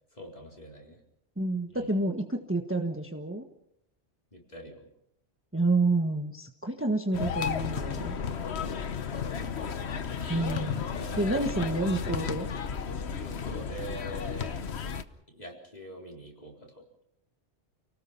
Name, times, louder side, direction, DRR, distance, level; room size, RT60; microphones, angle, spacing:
voice 1, 0.1-1.0 1.7-1.9 4.3-4.9 9.1-9.7 10.2-10.6 10.9-12.0 13.2-14.6 15.3-16.9, equal, 35° left, -1 dB, 4.3 m, -44 dB
voice 2, 1.4-3.5 5.5-8.2 10.3-10.8 11.2-12.5, right 2 dB, 10° right, 4 dB, 1.4 m, -29 dB
sound 1, 7.1-15.0, left 6 dB, 70° left, 1.3 m, -33 dB
29.5 x 18.5 x 5.6 m, 0.77 s
omnidirectional pair, 1.2 m